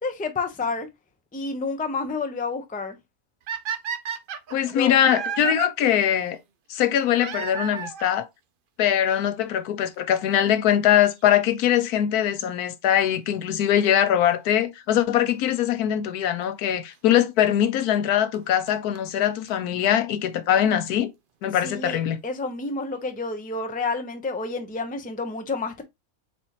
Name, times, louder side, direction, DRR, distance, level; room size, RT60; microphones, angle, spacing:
voice 1, 0.0-0.9 1.3-3.0 4.7-4.9 21.6-25.8, left 3 dB, 10° left, 0.4 m, -29 dB
sound 1, 3.5-5.7 7.2-8.2 9.1-9.2 9.9-10.0 10.2-10.3 12.2-12.5 15.3-15.4 16.4-16.5 18.0-18.1 18.3-18.4 18.7-18.8 18.9-19.0 19.2-19.3 19.5-19.6 19.8-19.9, right 7 dB, 65° right, 0.5 m, -32 dB
voice 2, 4.5-6.4 6.7-8.3 8.8-21.1 21.4-22.2, left 10 dB, 85° left, 1.2 m, -22 dB
4.3 x 4.3 x 2.9 m
omnidirectional pair, 1.6 m